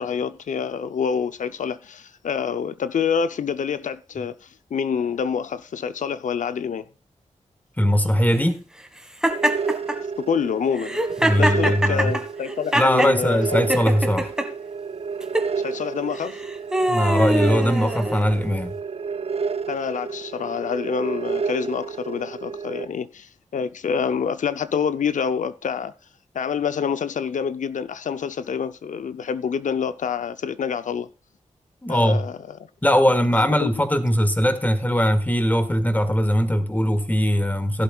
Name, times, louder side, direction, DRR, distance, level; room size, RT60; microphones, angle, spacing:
voice 1, 0.0-6.8 10.2-11.0 11.4-13.7 15.6-16.4 19.7-25.9 26.3-31.1 31.9-32.4 33.6-33.7, left 7 dB, 80° left, 0.7 m, -27 dB
voice 2, 7.8-8.6 11.2-12.2 12.7-14.3 16.9-18.7 31.8-32.2 32.8-37.8, equal, 15° left, 1.6 m, -20 dB
Laughter, 9.2-10.0 10.8-13.2 13.7-14.5 15.2-15.5 16.2-18.4, right 1 dB, 5° right, 1.7 m, -23 dB
sound 1, 9.3-22.8, right 5 dB, 50° right, 0.5 m, -30 dB
16.0 x 11.5 x 2.4 m
wide cardioid pair, 80°, 13 cm